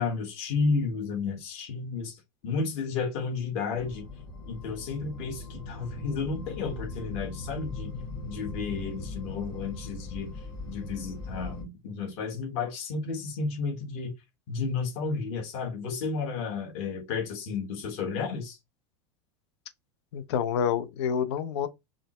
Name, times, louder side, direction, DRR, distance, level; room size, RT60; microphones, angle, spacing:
voice 1, 0.0-2.1 2.4-4.0 4.5-7.9 8.2-10.3 10.7-14.1 14.5-18.6, left 4 dB, 45° left, 1.3 m, -32 dB
sound 1, 3.7-11.6, left 2 dB, 20° left, 1.1 m, -39 dB
voice 2, 20.1-21.7, left 8 dB, 70° left, 0.6 m, -28 dB
4.9 x 2.0 x 3.0 m
supercardioid pair, 175°, 15 cm